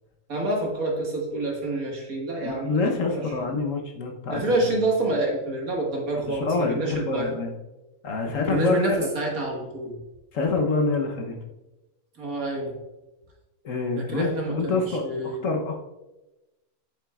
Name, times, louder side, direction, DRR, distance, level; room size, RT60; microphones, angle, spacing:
voice 1, 0.3-2.7 3.1-3.2 4.3-7.3 8.4-9.9 12.2-12.7 14.0-15.4, right 2 dB, 70° right, -1 dB, 2.2 m, -27 dB
voice 2, 2.4-4.6 6.1-7.5 8.0-9.1 10.3-11.3 13.6-15.8, left 3 dB, 60° left, 3 dB, 1.3 m, -26 dB
8.2 x 7.3 x 2.4 m, 1.0 s
omnidirectional pair, 1.6 m